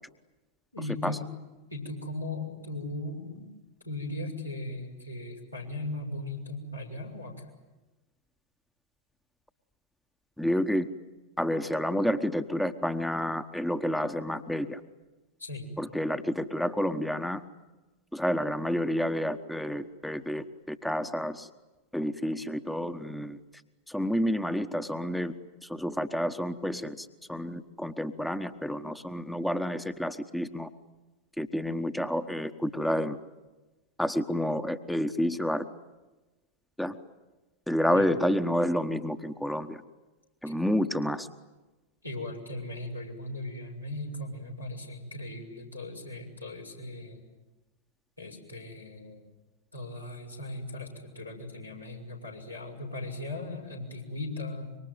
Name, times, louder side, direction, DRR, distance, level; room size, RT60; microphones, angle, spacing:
voice 1, 0.7-1.2 1.7-3.5 3.8-7.3 15.4-15.7 37.9-38.3 40.4-40.5 42.0-47.2 48.2-49.3 49.7-54.8, left 2 dB, 90° left, -1 dB, 6.5 m, -38 dB
voice 2, 10.4-10.9 11.4-14.8 15.8-17.4 18.1-21.5 21.9-23.4 23.9-25.4 25.6-30.7 31.4-33.2 34.0-35.6 36.8-37.0 37.7-39.8 40.4-41.3, equal, 5° left, 10 dB, 1.2 m, -29 dB
26.0 x 24.0 x 9.4 m, 1.1 s
figure-of-eight pair, 90°, 0 cm